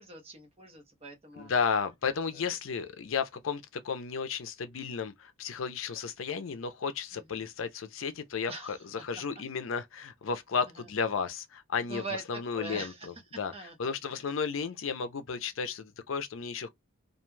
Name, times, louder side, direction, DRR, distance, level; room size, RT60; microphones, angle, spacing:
voice 1, 0.0-1.5 2.3-2.5 7.1-7.4 8.5-8.8 11.9-13.1 13.5-14.0, right 3 dB, 30° right, 0.8 m, -42 dB
voice 2, 1.4-16.7, left 6 dB, 70° left, 0.5 m, -33 dB
2.4 x 2.2 x 3.1 m
head